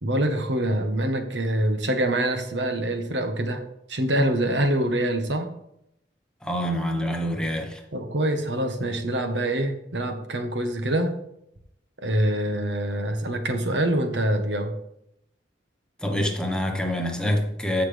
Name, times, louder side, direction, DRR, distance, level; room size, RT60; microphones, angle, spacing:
voice 1, 0.0-3.6 3.9-5.5 7.9-11.1 12.0-14.7, right 1 dB, 75° right, 5 dB, 1.4 m, -25 dB
voice 2, 6.4-7.8 16.0-17.8, equal, 5° left, 2 dB, 1.3 m, -26 dB
15.5 x 6.0 x 3.5 m, 0.77 s
head